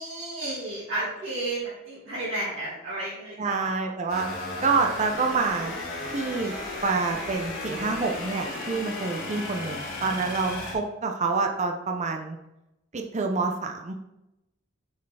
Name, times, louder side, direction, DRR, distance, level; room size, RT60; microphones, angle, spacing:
voice 1, 0.0-3.9, right 2 dB, 65° right, -9 dB, 1.8 m, -32 dB
voice 2, 3.4-4.3 4.6-5.7 6.1-6.5 6.8-12.4 12.9-14.0, right 4 dB, 35° right, 3 dB, 0.6 m, -27 dB
sound 1, 4.1-10.7, left 2 dB, 80° left, 2.4 m, -35 dB
6.8 x 4.5 x 3.3 m, 0.91 s
head